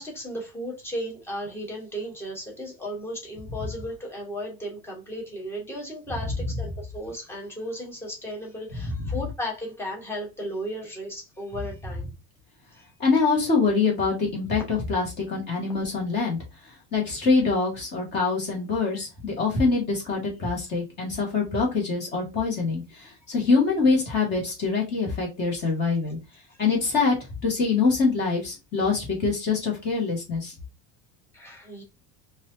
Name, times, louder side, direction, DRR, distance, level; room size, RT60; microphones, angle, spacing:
voice 1, 0.0-12.1 12.8-12.9 31.3-31.8, equal, 5° left, -1 dB, 1.0 m, -35 dB
voice 2, 13.0-16.4 16.9-26.2 26.6-27.2 27.4-30.5, left 4 dB, 35° left, -1 dB, 1.8 m, -24 dB
4.7 x 2.7 x 2.6 m, 0.25 s
cardioid pair, 180°, 31 cm